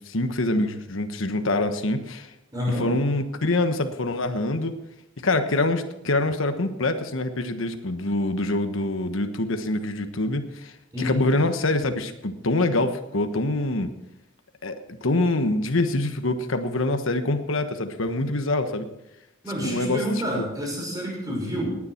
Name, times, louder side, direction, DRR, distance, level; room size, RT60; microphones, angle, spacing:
voice 1, 0.0-2.3 2.7-4.7 5.2-10.7 11.0-13.9 14.6-18.9 19.6-20.4, left 2 dB, 70° left, 8 dB, 1.3 m, -25 dB
voice 2, 2.5-2.9 10.9-11.2 19.4-21.8, equal, 20° right, -2 dB, 6.1 m, -28 dB
18.5 x 9.8 x 4.5 m, 0.88 s
head